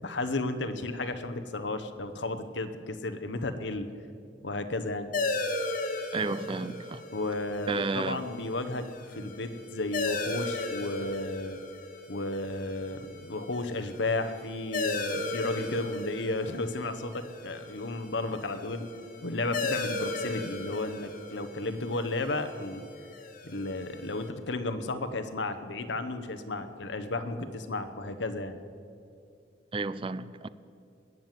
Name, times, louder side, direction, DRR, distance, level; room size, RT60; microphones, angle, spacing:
voice 1, 0.0-3.9 4.4-5.1 7.1-11.6 12.1-18.9 19.2-22.8 23.4-28.6, left 2 dB, 75° left, 9 dB, 1.0 m, -33 dB
sound 1, 5.1-24.3, left 3 dB, 50° left, 1.6 m, -37 dB
voice 2, 6.1-7.0 7.7-8.2 29.7-30.5, right 3 dB, 30° right, 16 dB, 0.4 m, -32 dB
20.0 x 7.6 x 9.2 m, 2.4 s
head